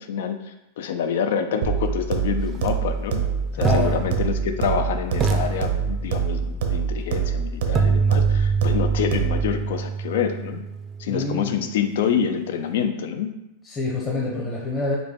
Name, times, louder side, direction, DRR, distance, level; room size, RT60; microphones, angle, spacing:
voice 1, 0.0-3.3 3.5-10.6 11.0-13.3, left 7 dB, 70° left, 8 dB, 0.4 m, -27 dB
sound 1, 1.6-9.6, right 6 dB, 75° right, 0.8 m, -25 dB
sound 2, 2.5-2.7 3.6-4.8 5.2-6.4 7.7-11.7, right 5 dB, 25° right, 0.4 m, -25 dB
voice 2, 3.6-4.0 11.1-11.6 13.6-15.0, left 2 dB, 20° left, -4 dB, 0.8 m, -26 dB
5.2 x 2.2 x 4.4 m, 0.92 s
supercardioid pair, 140°, 0 cm